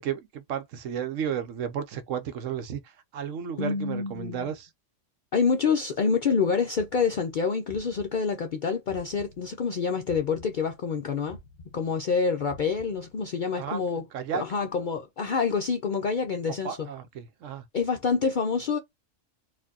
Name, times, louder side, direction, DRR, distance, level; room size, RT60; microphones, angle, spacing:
voice 1, 0.0-4.7 13.6-13.8 14.1-14.4 16.6-17.6, right 8 dB, 75° right, 1.0 m, -33 dB
voice 2, 3.6-4.5 5.3-11.4 11.7-14.0 14.3-16.9 17.7-18.8, left 5 dB, 65° left, 0.5 m, -27 dB
sound 1, 6.7-9.7 10.1-13.4, left 2 dB, 45° left, 0.9 m, -51 dB
4.3 x 2.6 x 2.7 m
omnidirectional pair, 1.3 m